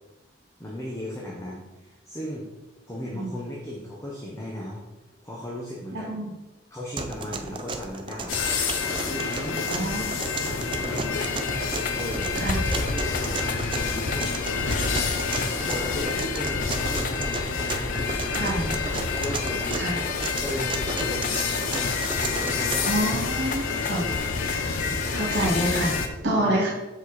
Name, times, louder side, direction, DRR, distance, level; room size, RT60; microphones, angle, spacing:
voice 1, 0.6-2.5 2.9-4.8 5.2-6.1 6.7-8.4 8.8-11.2 11.9-12.3 12.7-14.3 15.6-18.6 19.1-20.1 20.4-24.3 26.4-26.6, left 1 dB, 15° left, -4 dB, 0.9 m, -36 dB
voice 2, 5.9-6.3 9.7-10.1 12.3-12.6 18.3-18.7 19.7-19.9 22.9-24.0 24.8-26.7, right 1 dB, 65° right, -3 dB, 1.9 m, -27 dB
sound 1, 7.0-23.0, right 3 dB, 25° right, 0.4 m, -34 dB
sound 2, 8.3-26.1, left 4 dB, 85° left, 0.8 m, -29 dB
sound 3, 11.1-26.1, left 5 dB, 45° left, 0.5 m, -34 dB
6.2 x 5.0 x 4.1 m, 1.1 s
head